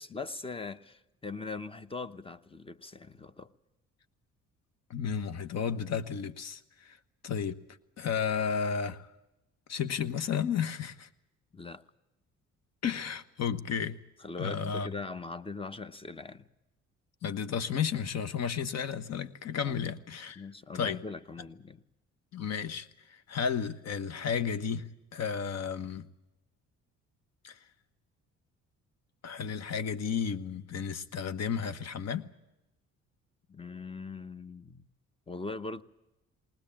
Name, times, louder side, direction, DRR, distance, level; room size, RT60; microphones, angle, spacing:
voice 1, 0.0-3.5 11.5-11.8 14.2-16.5 19.6-20.0 20.4-21.8 33.5-34.9 35.3-35.8, left 3 dB, 20° left, 14 dB, 1.0 m, -41 dB
voice 2, 4.9-7.0 7.2-7.6 8.0-9.1 9.7-11.1 12.8-14.0 14.4-14.9 17.2-20.4 20.7-21.0 22.3-26.0 27.4-27.6 29.2-32.3, left 7 dB, 60° left, 13 dB, 1.3 m, -33 dB
20.5 x 19.0 x 8.7 m, 0.95 s
cardioid pair, 90°, 30 cm